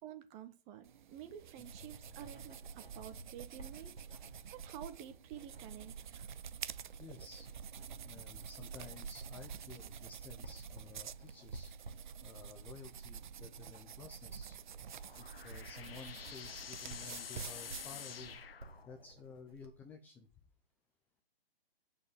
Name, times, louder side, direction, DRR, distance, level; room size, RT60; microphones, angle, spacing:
voice 1, 0.0-6.3, right 10 dB, 20° right, 1.5 m, -51 dB
sound 1, 0.8-18.3, right 7 dB, 50° right, 0.7 m, -49 dB
Writing, 1.1-19.8, right 2 dB, 85° right, 3.1 m, -55 dB
voice 2, 7.0-7.5 8.0-11.7 12.2-14.6 15.2-18.4 18.9-20.3, left 5 dB, 5° left, 0.5 m, -53 dB
sound 2, 14.7-19.3, left 7 dB, 70° left, 1.0 m, -49 dB
8.1 x 7.3 x 7.7 m
hypercardioid pair, 140°, 30 cm